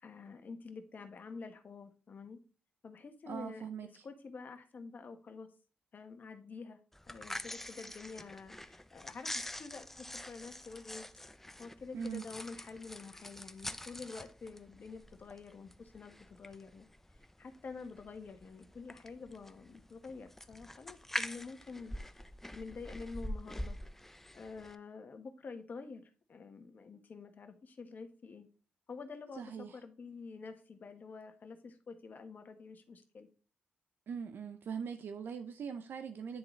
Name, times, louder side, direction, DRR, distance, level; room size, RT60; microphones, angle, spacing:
voice 1, 0.0-2.4 2.8-3.7 4.0-5.5 5.9-11.0 11.6-16.9 17.4-21.9 22.5-23.8 24.3-28.5 28.9-33.3, left 4 dB, 50° left, 1.1 m, -48 dB
voice 2, 3.3-4.1 11.9-12.3 29.3-29.8 34.1-36.4, right 6 dB, 65° right, 0.5 m, -41 dB
sound 1, 6.9-24.8, left 1 dB, 10° left, 0.4 m, -45 dB
9.5 x 3.8 x 3.1 m
cardioid pair, 80°, 4 cm